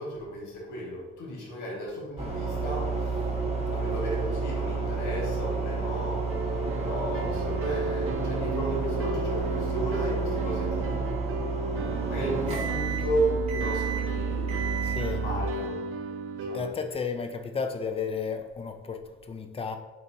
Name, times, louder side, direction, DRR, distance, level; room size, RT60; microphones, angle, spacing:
voice 1, 0.0-3.3 3.7-6.3 6.7-11.1 12.1-14.7 15.1-15.8 16.3-16.7, right 1 dB, 85° left, 1.3 m, -34 dB
sound 1, 2.2-15.4, right 4 dB, 20° right, 1.0 m, -30 dB
sound 2, 6.3-16.7, right 2 dB, 45° right, 0.5 m, -34 dB
voice 2, 14.8-15.2 16.5-19.8, left 5 dB, 20° left, 0.3 m, -33 dB
4.0 x 3.9 x 2.6 m
cardioid pair, 90°, 30 cm